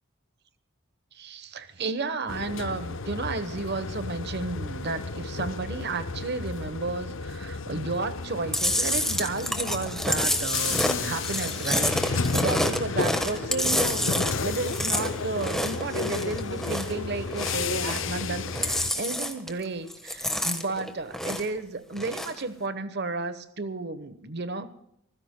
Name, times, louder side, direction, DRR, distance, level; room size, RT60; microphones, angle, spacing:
voice 1, 1.1-14.1 14.4-24.7, right 3 dB, 50° right, 12 dB, 1.1 m, -32 dB
sound 1, 2.3-18.9, left 4 dB, 60° left, 0.7 m, -33 dB
Chewing mastication, 8.5-17.0 17.3-18.2 18.5-19.6 19.9-21.6 21.9-22.4, left 1 dB, ahead, 1.3 m, -28 dB
26.0 x 15.5 x 2.2 m, 0.76 s
head